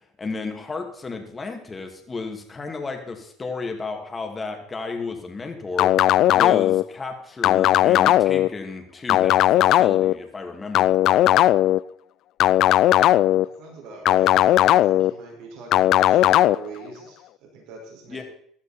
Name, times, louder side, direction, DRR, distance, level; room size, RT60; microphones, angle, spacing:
voice 1, 0.0-11.4 18.1-18.2, left 3 dB, 20° left, 4 dB, 2.7 m, -33 dB
sound 1, 5.8-6.8 7.4-8.5 9.1-10.1 10.7-11.8 12.4-13.5 14.1-15.1 15.7-16.6, left 13 dB, 60° left, 0.4 m, -17 dB
voice 2, 13.4-18.2, right 3 dB, 75° right, -1 dB, 5.9 m, -42 dB
16.0 x 12.0 x 4.6 m, 0.64 s
cardioid pair, 120°, 0 cm